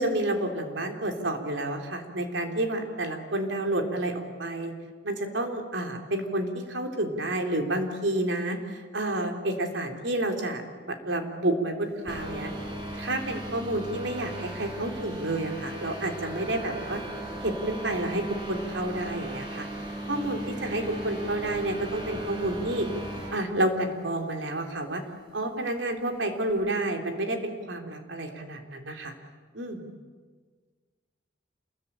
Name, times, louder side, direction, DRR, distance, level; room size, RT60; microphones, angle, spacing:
voice 1, 0.0-4.7 5.0-12.5 12.9-17.0 17.4-19.7 20.1-22.9 23.3-25.0 25.3-29.1 29.5-29.9, right 1 dB, 75° right, 4 dB, 3.7 m, -30 dB
sound 1, 12.1-23.5, right 1 dB, 25° right, 5.5 m, -37 dB
28.5 x 21.5 x 8.9 m, 1.5 s
head